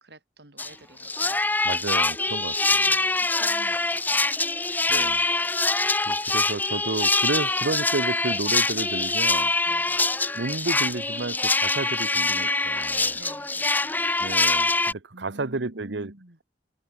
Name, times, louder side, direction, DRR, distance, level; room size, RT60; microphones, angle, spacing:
voice 1, 0.0-1.7 2.4-2.5 2.9-4.3 9.6-10.1 13.1-13.9 15.1-16.4, right 1 dB, 70° right, 3.7 m, -48 dB
sound 1, 0.6-0.7 1.0-14.9, left 3 dB, 10° left, 0.8 m, -24 dB
voice 2, 1.6-2.9 4.9-5.7 6.1-9.5 10.3-13.2 14.2-16.1, right 3 dB, 85° right, 1.0 m, -32 dB
head